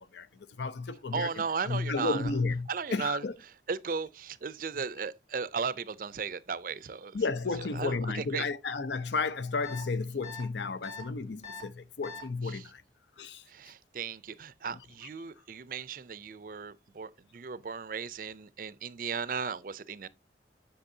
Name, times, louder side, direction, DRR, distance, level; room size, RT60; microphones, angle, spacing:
voice 1, 0.6-1.3 1.6-3.3 7.1-12.8 13.2-13.4, left 4 dB, 75° left, 0.6 m, -32 dB
voice 2, 1.1-2.3 2.7-3.2 3.7-7.2 7.7-8.5 12.4-12.7 13.5-20.1, right 5 dB, 50° right, 0.4 m, -36 dB
sound 1, 9.6-9.8 10.2-10.4 10.8-11.0 11.4-11.6 12.0-12.2, left 4 dB, 35° left, 3.1 m, -42 dB
7.8 x 6.7 x 2.7 m
head